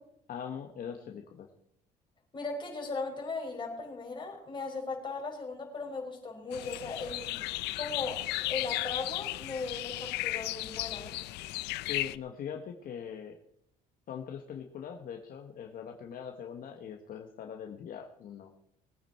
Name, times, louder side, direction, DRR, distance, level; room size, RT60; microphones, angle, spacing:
voice 1, 0.3-1.5 11.9-13.4 14.1-18.5, left 8 dB, 55° left, 3 dB, 1.5 m, -41 dB
voice 2, 2.3-7.4 7.7-11.1, left 3 dB, 30° left, 0 dB, 5.1 m, -38 dB
sound 1, 6.5-12.2, left 18 dB, 85° left, 0.6 m, -35 dB
20.5 x 9.1 x 4.5 m, 0.73 s
cardioid pair, 110°, 17 cm